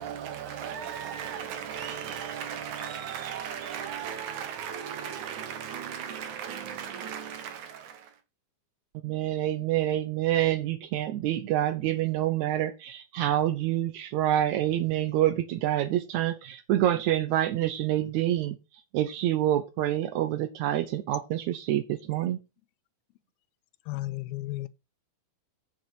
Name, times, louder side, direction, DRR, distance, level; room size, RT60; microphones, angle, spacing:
voice 1, 0.0-8.1, right 8 dB, 65° right, 2.1 m, -36 dB
voice 2, 9.0-18.5 18.9-22.4, right 13 dB, 85° right, 1.7 m, -27 dB
voice 3, 23.9-24.7, left 18 dB, 90° left, 2.6 m, -33 dB
7.7 x 6.8 x 6.1 m
omnidirectional pair, 4.3 m